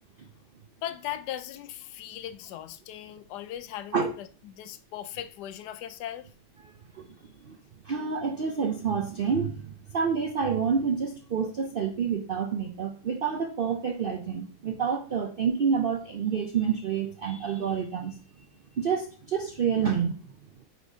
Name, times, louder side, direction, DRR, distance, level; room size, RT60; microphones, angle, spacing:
voice 1, 0.8-6.3, left 11 dB, 85° left, 1.2 m, -38 dB
voice 2, 6.6-7.1 7.4-7.6 7.8-18.5 18.8-20.2, right 6 dB, 80° right, 0.4 m, -28 dB
7.8 x 4.5 x 2.7 m
omnidirectional pair, 1.7 m